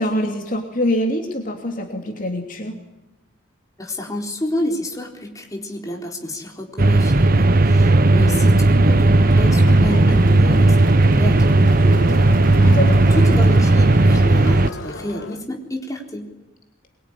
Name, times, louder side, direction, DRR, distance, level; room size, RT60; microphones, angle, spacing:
voice 1, 0.0-2.8 8.1-8.5 12.6-13.0, left 1 dB, 45° left, 2 dB, 3.0 m, -24 dB
voice 2, 3.8-12.3 13.1-16.3, left 1 dB, 15° left, 0 dB, 4.0 m, -29 dB
sound 1, 6.8-14.7, right 2 dB, 45° right, 0.9 m, -14 dB
Crowd, 9.1-15.4, left 1 dB, 70° left, 1.8 m, -32 dB
23.5 x 23.5 x 10.0 m, 1.0 s
head